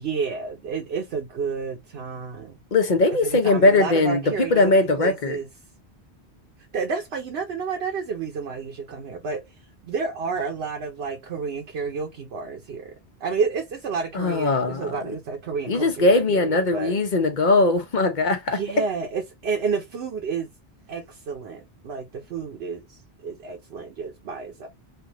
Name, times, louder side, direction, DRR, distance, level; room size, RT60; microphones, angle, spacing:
voice 1, 0.0-2.6 3.2-5.5 6.7-9.4 9.8-12.9 13.2-16.9 18.5-20.5 20.9-24.7, right 5 dB, 70° right, 1.0 m, -30 dB
voice 2, 2.7-4.2 4.5-5.4 14.1-15.0 15.7-18.6, left 2 dB, 50° left, 0.9 m, -20 dB
3.4 x 2.5 x 2.9 m
omnidirectional pair, 1.1 m